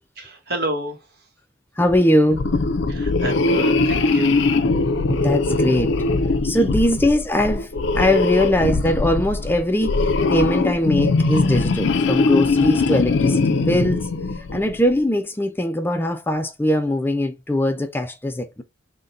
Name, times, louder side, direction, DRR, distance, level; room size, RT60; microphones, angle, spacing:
voice 1, 0.2-1.1 2.9-4.4, right 2 dB, 60° right, 1.2 m, -29 dB
voice 2, 1.8-2.4 5.1-6.0 6.4-10.0 10.3-14.1 14.5-18.6, left 1 dB, 10° left, 0.4 m, -21 dB
sound 1, 2.3-14.8, left 3 dB, 70° left, 0.5 m, -21 dB
3.9 x 2.2 x 3.8 m
head